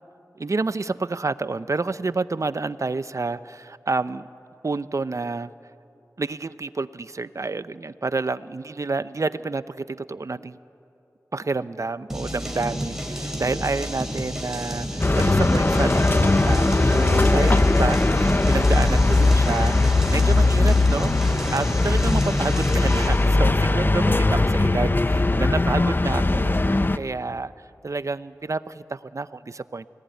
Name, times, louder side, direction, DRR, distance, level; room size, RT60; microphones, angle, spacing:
voice 1, 0.4-4.3 4.6-5.5 6.2-10.6 11.3-26.6 27.0-27.5 27.8-29.9, right 3 dB, 60° right, 14 dB, 0.7 m, -29 dB
sound 1, 12.1-23.3, equal, 10° right, 4.8 m, -31 dB
sound 2, 15.0-27.0, left 2 dB, 35° left, 0.8 m, -19 dB
29.5 x 19.0 x 9.4 m, 2.8 s
wide cardioid pair, 60°, 6 cm